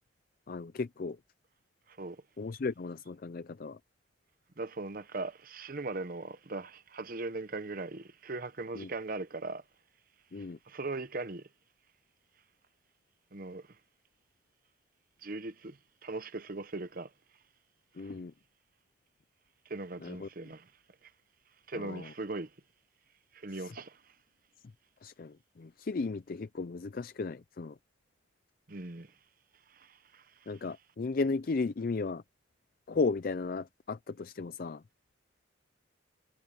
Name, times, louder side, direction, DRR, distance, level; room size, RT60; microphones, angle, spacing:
voice 1, 0.5-1.2 2.4-3.8 8.8-8.9 10.3-10.6 18.0-18.3 20.0-20.3 21.7-22.1 23.5-23.7 25.0-27.8 30.5-32.2 32.9-34.8, left 4 dB, 50° left, 0.4 m, -35 dB
voice 2, 1.9-2.2 4.6-9.6 10.4-11.5 13.3-13.8 15.2-17.1 18.0-18.1 19.7-20.7 21.0-21.1 21.7-22.5 23.3-24.0 28.7-29.1 29.7-30.5, right 3 dB, 50° right, 0.9 m, -40 dB
head